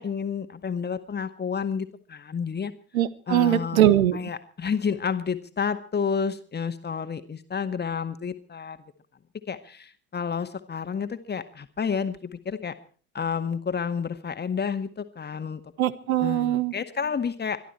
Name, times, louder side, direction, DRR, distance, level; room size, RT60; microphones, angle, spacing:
voice 1, 0.0-2.7 3.3-3.8 4.1-8.8 9.5-12.7 13.1-15.6 16.2-17.6, left 6 dB, 25° left, 9 dB, 1.9 m, -30 dB
voice 2, 2.9-4.2 15.8-16.7, right 12 dB, 70° right, 15 dB, 1.3 m, -21 dB
23.5 x 12.5 x 4.5 m, 0.41 s
figure-of-eight pair, 70°, 43 cm